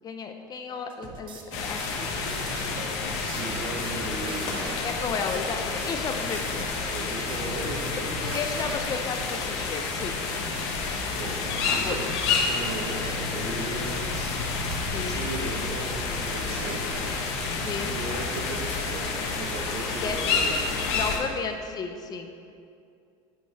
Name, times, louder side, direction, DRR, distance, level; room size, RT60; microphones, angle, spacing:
voice 1, 0.0-2.9 4.8-6.7 7.9-10.2 11.7-12.0 14.8-15.3 17.6-18.0 19.9-20.2 20.9-22.3, left 5 dB, 30° left, 6 dB, 0.4 m, -34 dB
sound 1, 0.7-20.4, right 4 dB, 35° right, 0.7 m, -44 dB
sound 2, 1.5-21.2, left 4 dB, 90° left, 1.0 m, -29 dB
voice 2, 2.9-4.6 6.9-8.2 11.1-12.1 12.5-14.4 15.0-17.2 17.9-21.0, right 2 dB, 75° right, -4 dB, 1.1 m, -37 dB
8.0 x 3.1 x 5.6 m, 2.5 s
cardioid pair, 140°, 14 cm